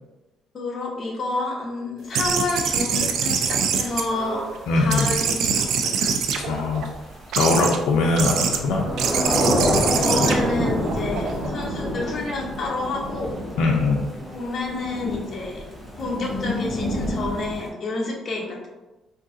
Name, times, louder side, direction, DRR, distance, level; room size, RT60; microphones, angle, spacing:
voice 1, 0.5-4.4 4.8-6.1 9.7-13.3 14.3-15.6 16.0-18.7, left 3 dB, 40° left, -2 dB, 0.7 m, -29 dB
sound 1, 2.1-4.6 4.9-6.8 7.3-7.8 8.2-8.6 9.0-11.5, right 6 dB, 65° right, 0.3 m, -24 dB
Thunder / Rain, 2.2-17.7, equal, 5° right, 0.6 m, -28 dB
voice 2, 4.7-5.1 6.4-6.9 7.3-8.9 13.6-14.1, left 3 dB, 80° left, -1 dB, 0.4 m, -21 dB
3.7 x 2.7 x 2.4 m, 1.1 s
cardioid pair, 140°, 0 cm